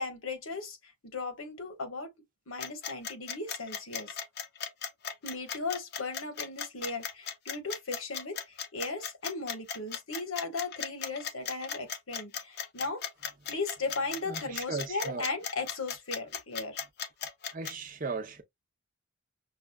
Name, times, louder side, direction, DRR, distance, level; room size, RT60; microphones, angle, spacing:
voice 1, 0.0-2.1 2.5-4.2 5.2-13.0 13.5-16.8, left 3 dB, 85° left, 1.3 m, -37 dB
sound 1, 2.6-17.7, left 7 dB, 50° left, 0.6 m, -37 dB
voice 2, 14.3-15.3 17.5-18.4, right 4 dB, 40° right, 0.7 m, -37 dB
6.2 x 2.3 x 2.2 m
head